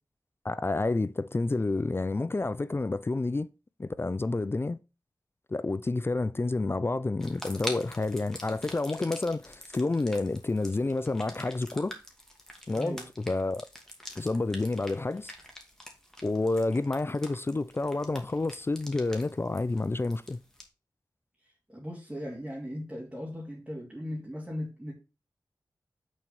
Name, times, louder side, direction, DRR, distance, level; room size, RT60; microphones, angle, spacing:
voice 1, 0.4-3.5 3.8-4.8 5.5-11.9 12.7-13.7 14.2-15.3 16.2-20.4, left 2 dB, 30° left, 0.4 m, -29 dB
sound 1, 7.2-20.6, left 1 dB, 5° left, 2.4 m, -45 dB
voice 2, 12.7-13.0 21.7-24.9, equal, 10° right, 2.7 m, -38 dB
6.2 x 4.5 x 5.4 m
cardioid pair, 40°, 8 cm